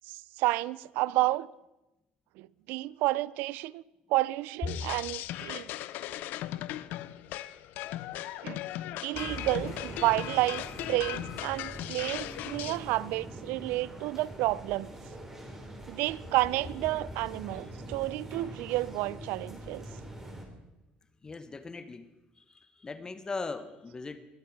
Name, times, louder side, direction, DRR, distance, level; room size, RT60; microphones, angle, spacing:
voice 1, 0.1-1.5 2.4-3.8 4.1-5.7 8.4-8.6 9.0-14.9 15.9-19.9, right 18 dB, 80° right, 0.4 m, -30 dB
sound 1, 4.7-12.8, left 14 dB, 70° left, 0.5 m, -38 dB
sound 2, 9.1-20.5, right 1 dB, 15° right, 3.3 m, -44 dB
voice 2, 21.2-24.2, left 3 dB, 25° left, 0.9 m, -40 dB
21.5 x 8.9 x 4.6 m
cardioid pair, 110°, 3 cm